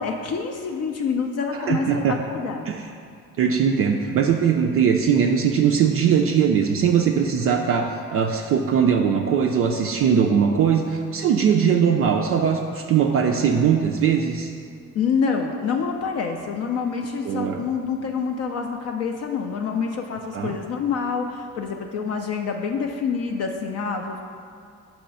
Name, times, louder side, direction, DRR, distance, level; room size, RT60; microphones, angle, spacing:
voice 1, 0.0-2.7 14.9-24.2, left 5 dB, 40° left, 2 dB, 0.5 m, -27 dB
voice 2, 1.7-2.2 2.7-2.8 3.4-14.5 17.2-17.6 20.3-20.5, right 7 dB, 35° right, 3 dB, 0.4 m, -20 dB
5.8 x 3.0 x 5.3 m, 2.3 s
figure-of-eight pair, 45°, 42 cm